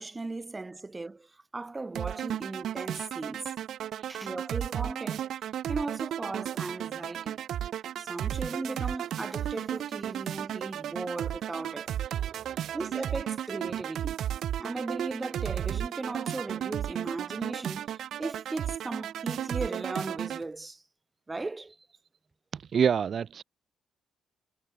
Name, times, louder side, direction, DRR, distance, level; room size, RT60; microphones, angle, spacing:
voice 1, 0.0-3.5 4.1-5.4 5.7-7.4 8.0-11.9 12.7-14.2 14.6-20.8 21.3-21.8, right 3 dB, 20° right, 6.0 m, -37 dB
sound 1, 1.9-20.4, right 11 dB, 70° right, 3.2 m, -34 dB
voice 2, 12.1-12.7 22.5-23.4, right 7 dB, 50° right, 0.8 m, -29 dB
cardioid pair, 90°, 0 cm